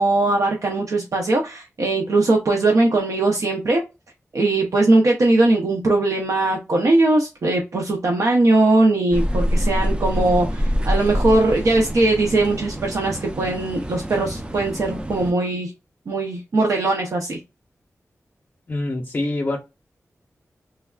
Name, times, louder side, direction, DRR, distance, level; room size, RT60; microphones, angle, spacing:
voice 1, 0.0-3.8 4.3-15.7 16.1-17.4, right 2 dB, 75° right, 0.6 m, -20 dB
sound 1, 9.1-15.3, equal, 20° right, 0.4 m, -25 dB
voice 2, 18.7-19.6, left 2 dB, 40° left, 0.5 m, -25 dB
3.3 x 2.3 x 2.3 m
wide cardioid pair, 75°, 5 cm